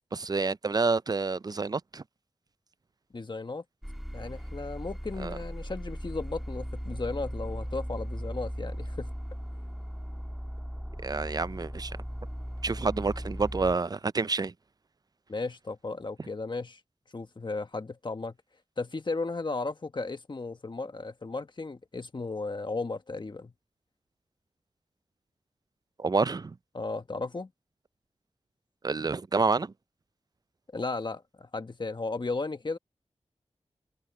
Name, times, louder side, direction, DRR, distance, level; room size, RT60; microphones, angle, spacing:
voice 1, 0.1-2.0 5.2-5.4 11.0-12.0 12.6-14.5 26.0-26.6 28.8-29.7, right 4 dB, 35° right, 0.4 m, -28 dB
voice 2, 3.1-3.6 4.1-9.1 15.3-16.8 17.1-18.4 18.8-23.5 26.7-27.5 30.7-32.8, left 3 dB, 45° left, 1.3 m, -35 dB
sound 1, 3.8-13.8, equal, ahead, 1.5 m, -37 dB
wide cardioid pair, 75°, 11 cm